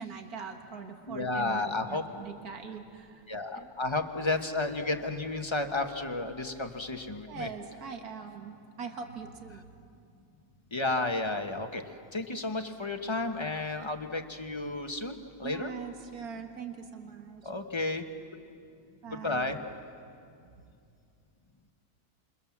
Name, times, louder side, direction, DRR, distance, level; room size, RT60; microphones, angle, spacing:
voice 1, 0.0-3.3 3.5-3.7 7.3-9.7 15.4-17.5 19.0-19.5 20.4-20.6, right 6 dB, 70° right, 4 dB, 2.2 m, -42 dB
voice 2, 1.1-2.0 3.3-7.5 10.7-11.8 12.1-15.7 17.4-18.0 19.2-19.6, left 2 dB, 20° left, 5 dB, 1.3 m, -32 dB
29.5 x 27.5 x 7.4 m, 2.4 s
omnidirectional pair, 1.6 m